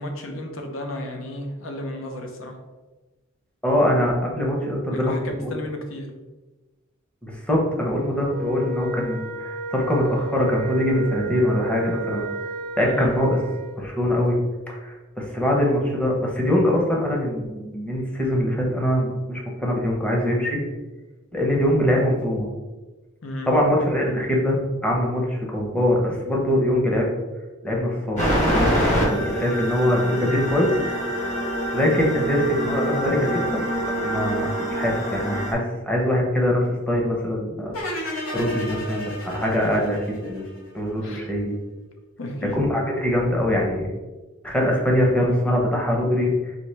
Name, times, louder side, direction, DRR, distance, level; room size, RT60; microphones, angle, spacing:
voice 1, 0.0-2.6 4.9-6.2 12.8-13.1 23.2-23.6 32.0-32.1 41.0-41.3 42.2-42.6, left 1 dB, 70° left, 3 dB, 0.7 m, -33 dB
voice 2, 3.6-5.1 5.4-5.5 7.2-12.3 12.8-13.4 13.8-14.4 14.7-20.6 21.3-22.5 23.5-27.1 27.6-30.8 31.7-33.7 34.0-37.7 38.0-40.4 40.7-41.6 42.6-43.9 44.4-46.6, left 1 dB, 5° left, -2 dB, 0.8 m, -23 dB
Wind instrument woodwind instrument, 8.2-13.8, right 2 dB, 45° right, 0.4 m, -32 dB
sound 1, 28.2-35.5, equal, 35° left, 1.4 m, -25 dB
sound 2, 37.7-40.9, left 1 dB, 85° left, 1.2 m, -32 dB
4.2 x 3.1 x 3.3 m, 1.2 s
head